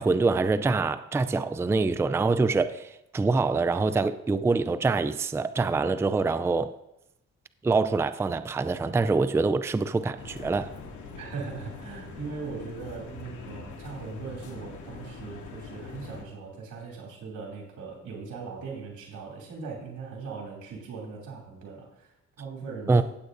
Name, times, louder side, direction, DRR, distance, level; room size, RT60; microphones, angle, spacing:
voice 1, 0.0-6.7 7.6-10.7 22.9-23.0, right 3 dB, 10° right, 0.4 m, -25 dB
sound 1, 10.1-16.2, left 4 dB, 80° left, 2.2 m, -43 dB
voice 2, 11.2-23.0, right 4 dB, 75° right, 2.7 m, -39 dB
15.5 x 8.1 x 2.6 m
cardioid pair, 90°, 30 cm